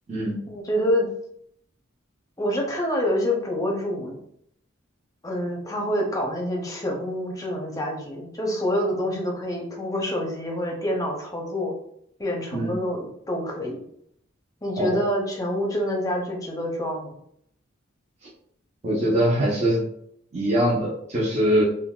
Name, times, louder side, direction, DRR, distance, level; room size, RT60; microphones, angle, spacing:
voice 1, 0.5-1.1 2.4-4.2 5.2-11.7 12.2-13.8 14.6-17.2, equal, 15° left, 0 dB, 0.6 m, -27 dB
voice 2, 18.8-19.8 20.3-21.6, right 1 dB, 35° right, -6 dB, 0.6 m, -22 dB
3.8 x 2.2 x 2.3 m, 0.69 s
head